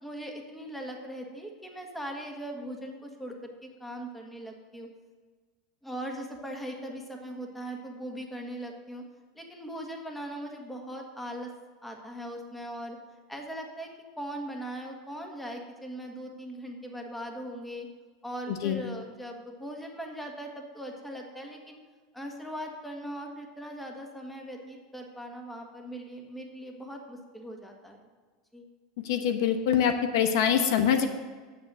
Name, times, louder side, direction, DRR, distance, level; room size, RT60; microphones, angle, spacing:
voice 1, 0.0-3.3 3.6-4.9 5.8-9.0 9.3-11.5 11.8-13.0 13.3-13.9 14.2-17.9 18.2-21.8 22.1-28.0 28.5-28.7, right 1 dB, 5° left, 2 dB, 1.6 m, -40 dB
voice 2, 29.0-31.1, left 8 dB, 75° left, 7 dB, 1.0 m, -24 dB
9.6 x 7.1 x 6.2 m, 1.4 s
supercardioid pair, 130°, 2 cm